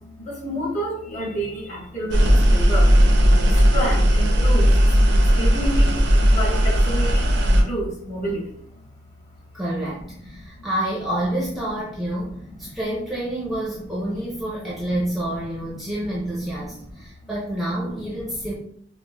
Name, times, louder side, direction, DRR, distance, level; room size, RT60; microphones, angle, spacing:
voice 1, 0.0-2.9 3.4-4.7 5.3-8.5, equal, 40° left, -4 dB, 1.2 m, -29 dB
sound 1, 2.1-7.6, equal, 60° right, 0.5 m, -16 dB
voice 2, 9.5-18.6, right 1 dB, ahead, -7 dB, 0.6 m, -28 dB
5.0 x 2.1 x 2.2 m, 0.66 s
head